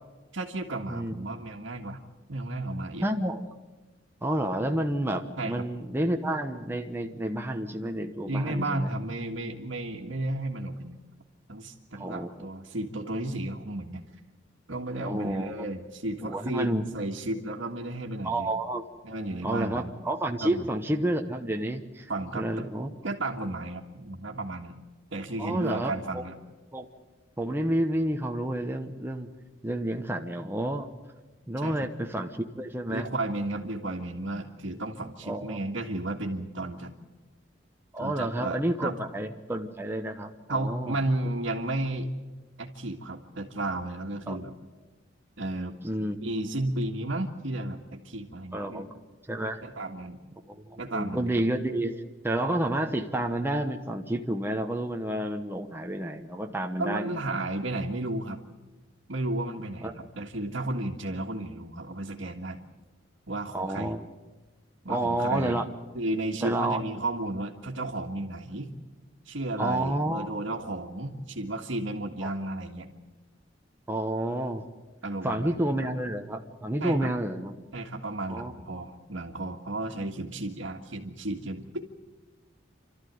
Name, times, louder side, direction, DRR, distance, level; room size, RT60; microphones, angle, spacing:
voice 1, 0.3-2.0 2.3-3.1 5.4-5.7 8.3-11.0 11.5-14.0 14.7-18.5 19.0-19.9 20.4-20.7 22.1-22.7 23.0-24.8 25.1-26.4 31.6-31.9 32.9-36.9 38.0-38.9 40.5-42.1 42.6-44.5 45.4-45.8 46.2-48.9 49.6-50.2 50.8-51.4 56.8-58.4 59.1-62.6 63.3-63.9 64.8-65.6 65.9-68.7 69.3-72.9 75.0-75.6 76.8-77.1 77.7-81.9, right 2 dB, 80° right, -3 dB, 1.8 m, -33 dB
voice 2, 3.0-3.4 4.2-8.9 12.0-12.3 15.0-15.5 16.2-16.8 18.2-18.8 19.4-22.9 25.4-26.2 26.7-26.9 27.4-29.3 29.6-30.9 31.5-33.1 35.2-35.6 37.9-41.0 44.3-44.4 45.8-46.2 48.5-48.9 49.3-49.6 50.5-57.2 59.8-59.9 63.5-64.0 64.9-65.6 66.4-66.8 69.6-70.4 72.2-72.3 73.9-74.7 75.2-77.5 78.3-78.5, right 1 dB, 10° right, 3 dB, 1.1 m, -30 dB
28.5 x 13.5 x 9.4 m, 1.2 s
head